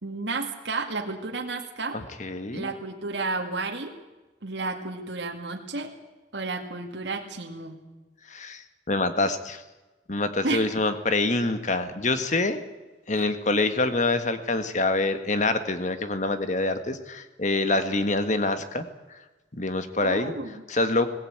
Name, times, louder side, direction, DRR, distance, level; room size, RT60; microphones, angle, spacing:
voice 1, 0.0-2.0 2.5-4.0 4.4-5.9 6.3-7.9 10.4-10.7 13.1-13.3 20.0-20.6, right 3 dB, 75° right, 2 dB, 2.1 m, -32 dB
voice 2, 1.9-2.7 8.3-9.6 10.1-12.6 13.1-19.2 19.5-20.3 20.7-21.1, left 2 dB, 40° left, 9 dB, 1.6 m, -26 dB
20.5 x 17.5 x 8.7 m, 1.2 s
head